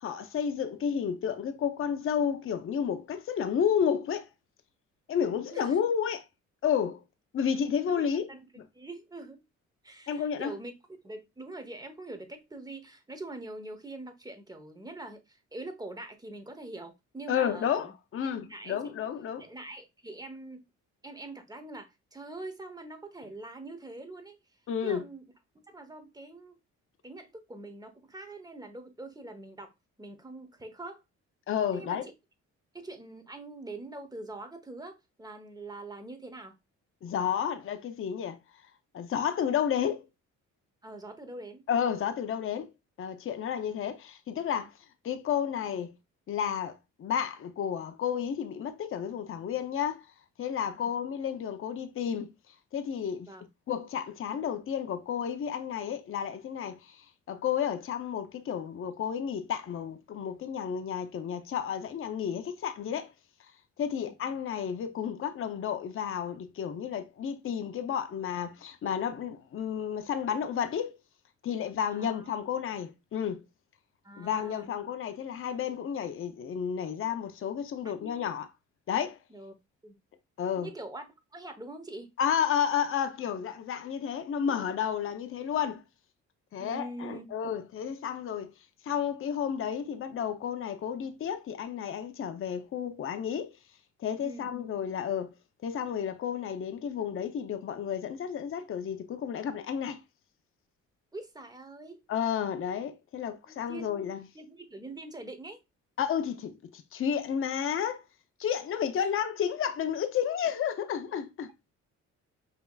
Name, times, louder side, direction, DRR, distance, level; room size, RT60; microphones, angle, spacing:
voice 1, 0.0-4.3 5.1-6.2 6.6-7.0 7.3-8.3 10.1-10.5 17.3-19.5 24.7-25.0 31.5-32.1 37.0-38.4 38.9-40.1 41.7-42.7 43.0-44.7 45.0-45.9 46.3-50.1 50.4-52.3 52.7-53.3 53.7-63.1 63.8-71.0 71.4-73.4 74.2-78.5 78.9-79.2 80.4-80.7 82.2-85.8 86.5-88.5 88.8-93.5 94.0-95.3 95.6-100.0 102.1-104.2 106.0-108.0 108.4-111.5, left 8 dB, 45° left, 0.6 m, -31 dB
voice 2, 8.7-9.4 9.8-10.7 11.0-17.9 18.5-18.9 19.4-20.6 21.0-24.4 24.8-25.2 25.7-26.6 27.0-29.7 30.0-31.0 31.7-32.0 32.7-36.6 40.8-41.6 50.8-50.9 53.2-53.5 63.9-64.1 71.9-72.3 74.0-74.7 77.8-78.2 79.3-79.5 79.8-80.0 80.6-81.1 81.3-82.1 86.6-87.3 94.2-94.5 101.1-102.0 103.5-103.9 104.3-105.6 108.9-109.1, right 2 dB, 15° right, 0.9 m, -44 dB
5.6 x 2.9 x 2.3 m
cardioid pair, 90°, 30 cm